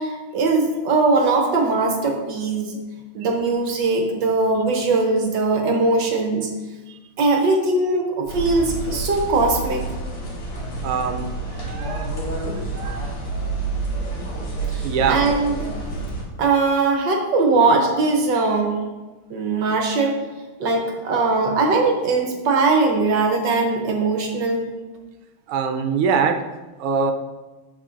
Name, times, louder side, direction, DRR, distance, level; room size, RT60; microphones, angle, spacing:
voice 1, 0.0-2.8 3.1-6.5 7.2-9.8 14.7-15.6 16.4-18.8 19.3-20.1 20.6-24.7, right 3 dB, 65° right, 1 dB, 1.4 m, -20 dB
sound 1, 8.3-16.2, right 3 dB, 85° left, 2.8 m, -28 dB
voice 2, 10.8-11.2 11.5-12.1 12.7-13.0 14.8-15.2 25.5-26.3 26.8-27.1, right 6 dB, 90° right, 5 dB, 1.6 m, -23 dB
12.5 x 4.4 x 2.5 m, 1.2 s
omnidirectional pair, 2.4 m